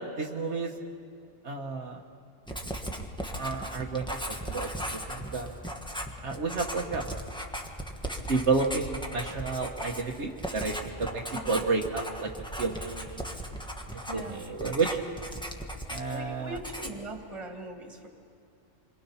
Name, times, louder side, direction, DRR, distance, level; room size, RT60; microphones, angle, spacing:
voice 1, 0.2-0.7 1.4-2.0 3.4-4.1 4.5-5.5 6.2-7.0 8.3-12.3 12.6-13.2 14.1-15.0 15.9-16.6, right 4 dB, 65° right, 1 dB, 1.5 m, -31 dB
Writing, 2.5-16.3 16.5-17.1, equal, 5° left, 1.4 m, -37 dB
voice 2, 11.3-11.7 14.1-14.5 16.1-18.1, right 2 dB, 25° right, 3 dB, 2.0 m, -40 dB
27.5 x 22.0 x 5.6 m, 2.4 s
omnidirectional pair, 1.3 m